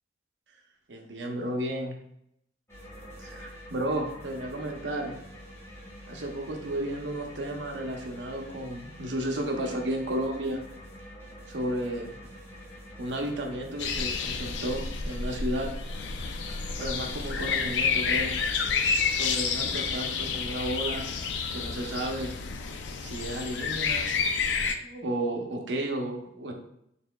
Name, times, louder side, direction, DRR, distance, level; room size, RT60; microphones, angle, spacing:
voice 1, 0.9-1.9 3.2-5.1 6.1-10.6 11.5-12.2 13.0-15.7 16.8-18.3 19.1-21.1 21.5-22.3 23.0-24.1 24.8-26.5, right 1 dB, 80° right, 2 dB, 0.8 m, -33 dB
sound 1, 2.7-20.5, equal, 15° left, 1.3 m, -47 dB
sound 2, 13.8-24.7, left 5 dB, 85° left, 0.4 m, -30 dB
4.1 x 3.6 x 2.3 m, 0.75 s
head